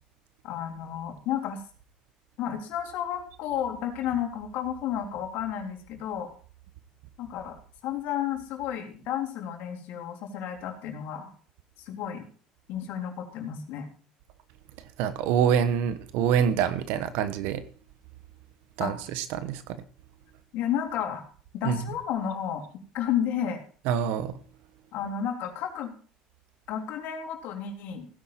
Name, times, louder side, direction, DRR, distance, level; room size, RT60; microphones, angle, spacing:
voice 1, 0.4-1.6 2.4-6.3 7.2-11.3 11.8-12.3 12.7-13.9 18.8-18.9 20.5-21.2 21.5-22.7 22.9-23.6 24.9-25.9 26.7-28.1, left 9 dB, 65° left, 3 dB, 3.6 m, -32 dB
voice 2, 15.0-17.6 18.8-19.8 21.6-21.8 23.8-24.4, right 8 dB, 70° right, 12 dB, 1.2 m, -26 dB
16.5 x 9.8 x 4.3 m, 0.42 s
hypercardioid pair, 75°, 3 cm